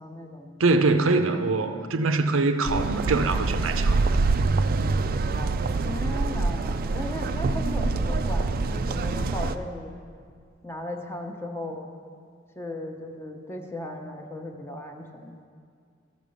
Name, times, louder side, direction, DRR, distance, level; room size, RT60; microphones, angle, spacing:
voice 1, 0.0-0.6 5.3-5.5 5.8-10.0 10.6-11.9 12.6-15.3, left 1 dB, 10° left, 2 dB, 0.8 m, -36 dB
voice 2, 0.6-4.0, right 3 dB, 90° right, 7 dB, 0.6 m, -23 dB
sound 1, 2.6-9.5, right 3 dB, 50° right, 0.4 m, -25 dB
13.0 x 5.2 x 6.5 m, 2.1 s
head